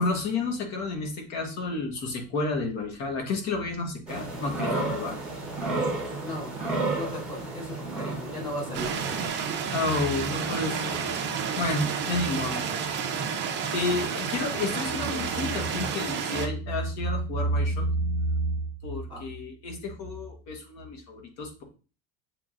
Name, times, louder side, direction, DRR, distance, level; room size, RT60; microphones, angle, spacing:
voice 1, 0.0-5.2 9.7-11.2 11.6-12.6 13.7-21.6, left 2 dB, 45° left, 3 dB, 1.2 m, -30 dB
sound 1, 4.1-9.3, right 2 dB, 5° right, 1.0 m, -32 dB
voice 2, 6.2-8.9 19.1-19.2, equal, 15° left, -5 dB, 2.5 m, -37 dB
sound 2, 8.7-16.5, right 6 dB, 30° right, 0.6 m, -30 dB
7.1 x 3.1 x 2.4 m, 0.35 s
cardioid pair, 160°, 39 cm